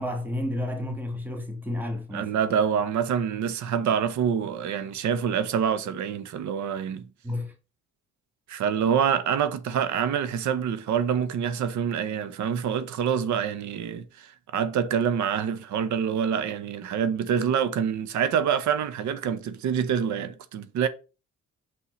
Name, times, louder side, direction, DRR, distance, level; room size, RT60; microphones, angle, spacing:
voice 1, 0.0-2.3 7.2-7.5, left 1 dB, 5° right, 1.4 m, -31 dB
voice 2, 2.1-7.1 8.5-20.9, right 8 dB, 70° right, 0.8 m, -26 dB
5.7 x 5.5 x 3.1 m
cardioid pair, 90°, 30 cm